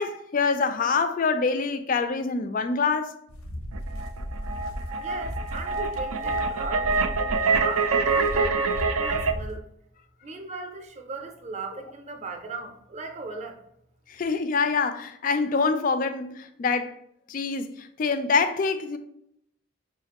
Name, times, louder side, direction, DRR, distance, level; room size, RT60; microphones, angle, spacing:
voice 1, 0.0-3.1 14.1-16.9 17.3-19.0, left 4 dB, 40° left, 0.3 m, -25 dB
sound 1, 3.3-9.6, equal, 85° left, 0.7 m, -36 dB
sound 2, 3.7-9.3, right 4 dB, 85° right, 0.4 m, -25 dB
voice 2, 4.9-9.7 10.2-13.6, right 4 dB, 30° right, 0.5 m, -38 dB
5.7 x 2.4 x 2.9 m
head